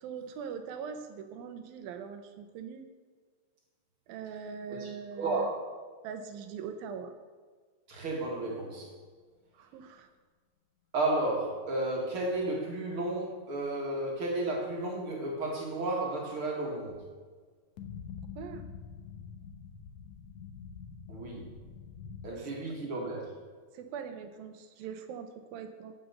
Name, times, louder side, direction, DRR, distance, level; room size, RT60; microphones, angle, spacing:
voice 1, 0.0-2.9 4.1-5.5 6.0-7.1 9.6-10.1 18.4-18.6 23.7-25.9, right 6 dB, 75° right, 8 dB, 2.5 m, -41 dB
voice 2, 5.2-5.5 7.9-8.9 10.9-17.0 21.1-21.5 22.2-23.2, right 2 dB, 45° right, -1 dB, 2.0 m, -32 dB
sound 1, 17.8-22.3, left 6 dB, 90° left, 1.5 m, -45 dB
11.5 x 5.5 x 8.1 m, 1.5 s
omnidirectional pair, 4.4 m